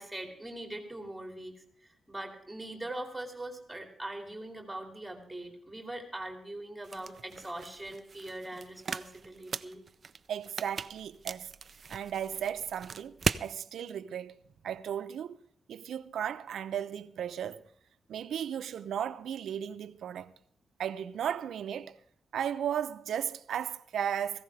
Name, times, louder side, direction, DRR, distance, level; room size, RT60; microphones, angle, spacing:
voice 1, 0.0-9.8, right 1 dB, 5° right, 2.7 m, -42 dB
sound 1, 6.8-13.5, right 5 dB, 40° right, 0.5 m, -38 dB
voice 2, 10.3-11.5 11.9-15.4 15.7-17.6 18.1-20.3 20.8-22.0 22.3-24.4, right 9 dB, 90° right, 0.8 m, -35 dB
18.0 x 16.0 x 3.4 m
wide cardioid pair, 150°, 0 cm